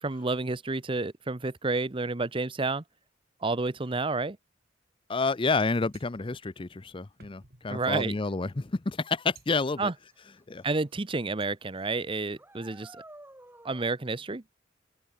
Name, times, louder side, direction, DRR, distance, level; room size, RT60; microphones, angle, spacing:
voice 1, 0.0-2.8 3.4-4.4 7.7-8.2 9.8-9.9 10.6-13.0 13.6-14.4, right 3 dB, 25° right, 0.8 m, -30 dB
voice 2, 5.1-9.9 10.5-10.6, left 3 dB, 25° left, 0.6 m, -29 dB
sound 1, 5.7-10.7 11.1-12.2, right 5 dB, 55° right, 5.9 m, -61 dB
sound 2, 10.4-10.5 10.9-11.2 11.5-11.6 12.3-13.9, right 1 dB, 10° right, 6.3 m, -51 dB
open air
head